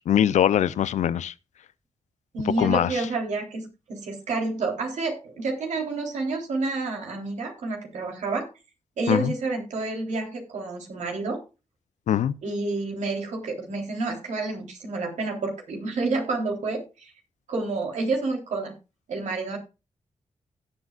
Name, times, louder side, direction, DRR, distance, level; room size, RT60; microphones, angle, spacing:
voice 1, 0.0-1.3 2.6-3.0 9.1-9.3 12.1-12.3, left 10 dB, 85° left, 0.6 m, -22 dB
voice 2, 2.3-8.5 9.0-11.4 12.4-17.1 17.5-18.7 19.1-19.6, right 3 dB, 85° right, 3.5 m, -29 dB
17.0 x 8.1 x 2.4 m
cardioid pair, 60°, 12 cm